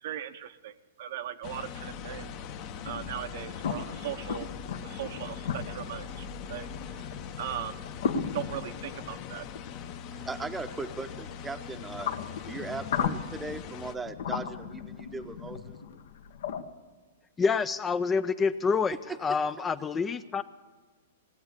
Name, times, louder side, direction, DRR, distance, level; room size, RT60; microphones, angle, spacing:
voice 1, 0.0-2.3 2.8-4.5 4.8-7.8 8.3-9.5, right 11 dB, 60° right, 11 dB, 0.7 m, -39 dB
sound 1, 1.4-13.9, left 7 dB, 40° left, 0.8 m, -41 dB
sound 2, 2.8-16.6, left 7 dB, 70° left, 0.9 m, -37 dB
voice 2, 10.1-12.1 12.4-15.8, right 3 dB, 10° right, 10 dB, 0.7 m, -38 dB
voice 3, 17.4-19.0 19.2-20.4, left 5 dB, 15° left, 14 dB, 0.3 m, -27 dB
17.5 x 8.2 x 8.2 m, 1.4 s
hypercardioid pair, 140°, 0 cm